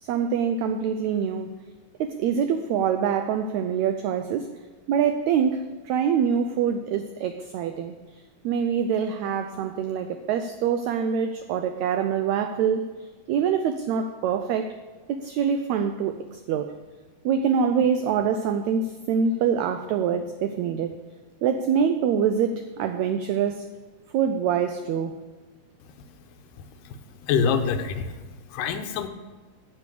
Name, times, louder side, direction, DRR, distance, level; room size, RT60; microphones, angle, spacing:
voice 1, 0.0-1.5 2.0-4.5 4.9-7.9 8.4-14.7 15.1-16.7 17.2-21.0 21.4-23.7 24.1-25.2, right 7 dB, 90° right, 8 dB, 1.6 m, -25 dB
voice 2, 26.8-28.2 28.5-29.1, left 6 dB, 85° left, 8 dB, 2.3 m, -26 dB
9.6 x 7.1 x 6.8 m, 1.3 s
omnidirectional pair, 3.8 m